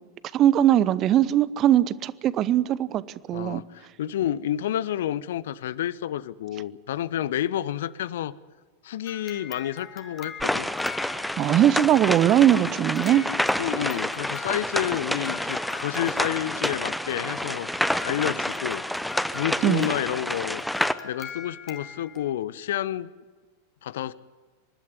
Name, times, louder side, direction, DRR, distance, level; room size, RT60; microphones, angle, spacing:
voice 1, 0.3-3.0 3.3-3.6 11.4-13.2 19.6-19.9, right 11 dB, 30° right, 18 dB, 0.7 m, -20 dB
voice 2, 3.3-8.3 8.8-10.7 13.6-17.7 18.0-18.8 19.3-20.6 21.0-23.1 23.8-24.1, left 11 dB, 60° left, 20 dB, 0.6 m, -29 dB
sound 1, 9.1-11.8 12.5-22.3, left 7 dB, 20° left, 1.9 m, -43 dB
sound 2, 10.4-20.9, left 1 dB, ahead, 0.8 m, -28 dB
25.0 x 12.0 x 9.7 m, 1.4 s
figure-of-eight pair, 90°, 0 cm